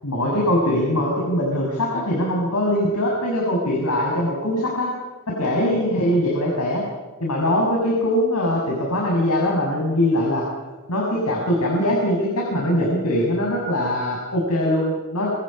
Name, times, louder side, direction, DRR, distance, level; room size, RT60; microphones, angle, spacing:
voice 1, 0.0-4.9 5.3-6.8 7.2-10.4 10.9-15.3, left 1 dB, 90° left, -2 dB, 6.7 m, -22 dB
27.5 x 27.0 x 5.6 m, 1.2 s
head